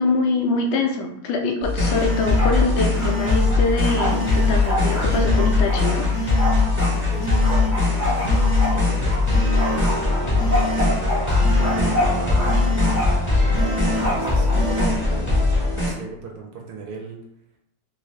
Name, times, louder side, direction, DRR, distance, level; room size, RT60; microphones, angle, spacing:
voice 1, 0.0-6.1, left 3 dB, 85° left, 2 dB, 1.2 m, -24 dB
sound 1, 1.6-15.9, left 3 dB, 10° left, 0.7 m, -20 dB
sound 2, 1.9-2.4 2.9-3.5 4.0-4.6 5.1-5.6 6.1-6.6 7.2-7.7 8.2-8.8 9.3-9.8 10.4-10.9 11.4-11.9 12.4-13.0 13.5-14.1 14.5-15.0, left 1 dB, 65° left, 1.1 m, -28 dB
Bark, 2.0-2.6 2.9-6.9 7.4-9.2 9.6-12.5 12.8-13.3 14.0-14.9, equal, 20° right, 0.4 m, -28 dB
voice 2, 6.7-12.9 13.4-17.2, right 3 dB, 70° right, 1 dB, 1.1 m, -37 dB
3.2 x 2.6 x 3.1 m, 0.75 s
omnidirectional pair, 1.8 m